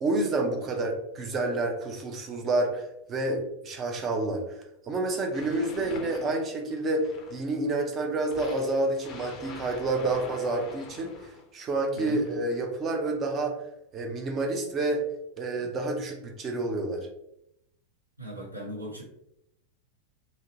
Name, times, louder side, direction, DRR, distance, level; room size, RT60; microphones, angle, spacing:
voice 1, 0.0-4.6 4.9-13.6 13.9-15.0 15.4-17.1, right 2 dB, 30° right, 3 dB, 0.5 m, -29 dB
sound 1, 5.3-7.6 8.3-11.4 12.0-12.6, left 4 dB, 35° left, 0.4 m, -44 dB
voice 2, 11.9-12.3 18.2-19.0, right 1 dB, 85° right, -2 dB, 0.7 m, -38 dB
2.7 x 2.1 x 2.6 m, 0.80 s
figure-of-eight pair, 90°, 0 cm